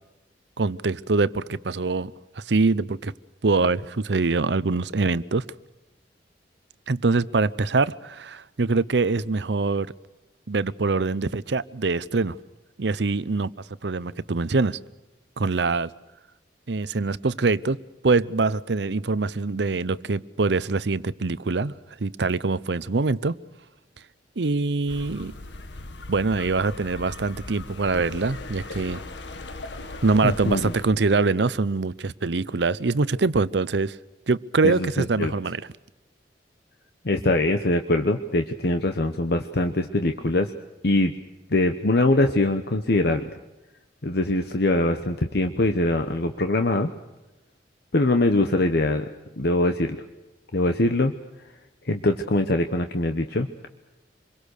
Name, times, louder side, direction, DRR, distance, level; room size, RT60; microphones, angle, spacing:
voice 1, 0.6-3.1 3.4-5.4 6.9-9.9 10.5-12.4 12.8-13.5 13.8-14.8 15.4-15.9 16.7-17.8 18.0-21.7 22.0-23.3 24.4-25.3 26.1-29.0 30.0-34.0 34.3-35.6, right 3 dB, 70° right, 17 dB, 0.7 m, -24 dB
sound 1, 24.9-30.9, left 2 dB, 80° left, 1.7 m, -39 dB
voice 2, 30.2-30.7 34.6-35.3 37.0-40.5 40.8-41.1 41.5-43.2 44.0-46.9 47.9-49.1 49.4-50.0 50.5-51.1 51.8-53.7, left 2 dB, 65° left, 7 dB, 1.1 m, -23 dB
26.5 x 22.5 x 6.6 m, 1.0 s
head